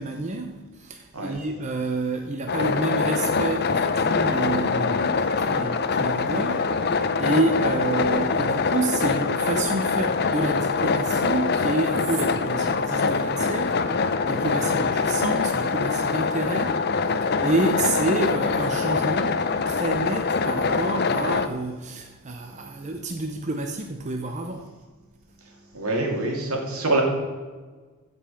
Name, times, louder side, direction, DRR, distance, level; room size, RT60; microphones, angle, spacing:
voice 1, 0.0-6.7 7.2-13.8 14.3-24.7, right 2 dB, 30° right, 4 dB, 0.6 m, -29 dB
sound 1, 2.5-21.5, left 4 dB, 45° left, 0.6 m, -24 dB
voice 2, 25.4-27.0, right 2 dB, 75° right, 1 dB, 2.4 m, -26 dB
15.5 x 5.4 x 5.6 m, 1.4 s
head